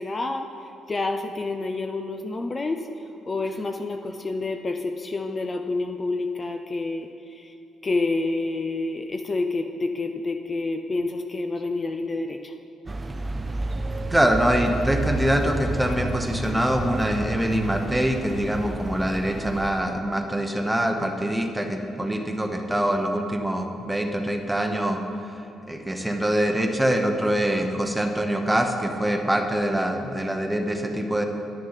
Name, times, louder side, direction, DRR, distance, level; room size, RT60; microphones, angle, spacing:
voice 1, 0.0-7.5 7.8-12.5, left 3 dB, 30° left, 5 dB, 0.5 m, -28 dB
sound 1, 12.9-19.7, right 2 dB, 25° right, 0.5 m, -30 dB
voice 2, 14.1-25.0 25.7-31.2, right 1 dB, 5° right, 4 dB, 1.0 m, -24 dB
10.5 x 6.4 x 5.7 m, 2.9 s
cardioid pair, 90°, 0 cm